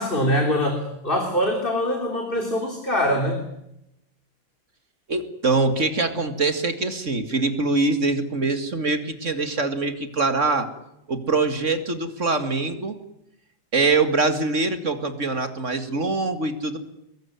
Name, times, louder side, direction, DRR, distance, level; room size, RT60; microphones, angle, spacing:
voice 1, 0.0-3.4, equal, 25° left, 3 dB, 3.4 m, -23 dB
voice 2, 5.1-10.7 11.1-13.0 13.7-16.8, right 3 dB, 35° right, 9 dB, 2.3 m, -23 dB
24.0 x 21.0 x 9.6 m, 0.83 s
omnidirectional pair, 2.3 m